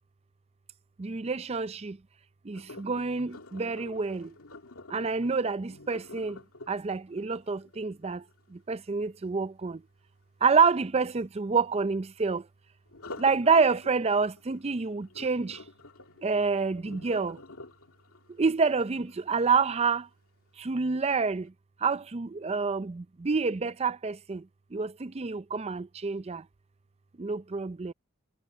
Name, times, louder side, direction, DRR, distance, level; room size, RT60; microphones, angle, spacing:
voice 1, 1.0-2.0 2.5-4.3 4.9-6.4 6.7-8.2 8.7-9.8 10.4-12.4 13.2-15.6 16.2-17.4 18.4-20.0 20.6-21.5 21.8-24.4 24.7-26.4 27.2-27.9, right 4 dB, 30° right, 0.5 m, -27 dB
Sink (filling or washing), 2.5-8.5 12.9-19.9 20.4-20.7 21.2-21.3, left 2 dB, 85° left, 2.4 m, -49 dB
head